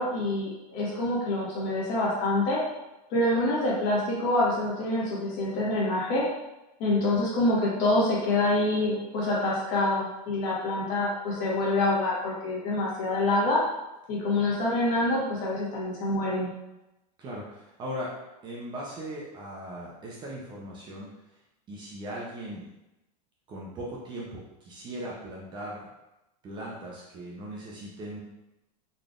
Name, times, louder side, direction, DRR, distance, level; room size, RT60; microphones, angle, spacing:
voice 1, 0.0-2.6 3.1-6.3 6.8-13.6 14.1-16.5, left 2 dB, 45° left, -5 dB, 1.5 m, -26 dB
voice 2, 17.2-18.1 18.4-21.1 21.7-22.7 23.5-25.9 26.4-28.2, right 1 dB, 20° right, -4 dB, 0.6 m, -38 dB
3.9 x 3.2 x 2.5 m, 0.94 s
supercardioid pair, 155°, 20 cm